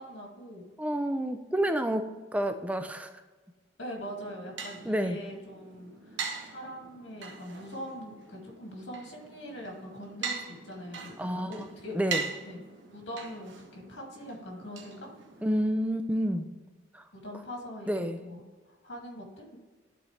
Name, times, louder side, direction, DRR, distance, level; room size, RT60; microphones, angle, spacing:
voice 1, 0.0-0.7 3.8-12.0 12.4-12.6 12.9-15.1 17.1-19.6, equal, 75° left, 0 dB, 2.1 m, -42 dB
voice 2, 0.8-3.1 4.9-5.2 11.2-11.5 11.9-12.2 15.4-16.5 16.9-17.0 17.9-18.2, equal, 5° right, 7 dB, 0.4 m, -29 dB
sound 1, 4.0-15.6, right 5 dB, 70° right, 1.0 m, -41 dB
11.5 x 4.1 x 3.2 m, 1.3 s
head